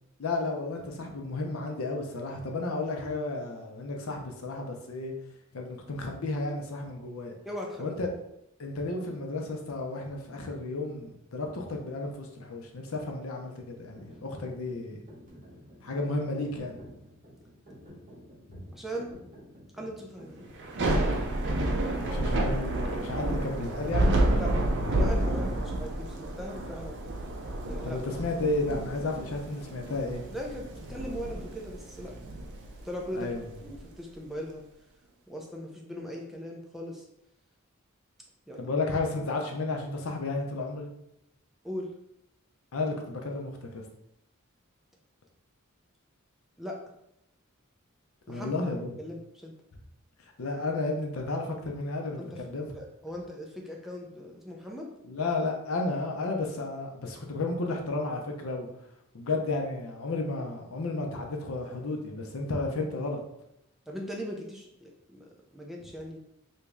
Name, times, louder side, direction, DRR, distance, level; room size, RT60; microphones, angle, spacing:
voice 1, 0.2-5.1 5.5-7.3 7.8-8.1 8.6-15.0 15.8-16.8 18.5-18.6 22.0-24.2 27.8-30.3 33.2-33.5 38.6-40.9 42.7-43.8 48.3-48.9 50.4-52.7 55.0-58.7 59.1-63.2, left 2 dB, 75° left, 2 dB, 0.6 m, -32 dB
voice 2, 7.5-7.8 18.7-19.2 19.7-20.4 24.4-24.5 24.8-27.2 27.7-28.0 30.3-32.1 32.8-33.3 33.6-34.6 35.3-37.0 38.5-38.8 41.6-41.9 46.6-46.8 48.3-48.5 49.0-49.5 52.2-54.9 63.9-66.2, equal, ahead, -1 dB, 0.4 m, -39 dB
sound 1, 13.8-21.7, equal, 35° right, 1.2 m, -51 dB
Thunder / Rain, 20.6-33.8, right 1 dB, 55° right, 0.5 m, -30 dB
3.0 x 2.7 x 3.5 m, 0.81 s
head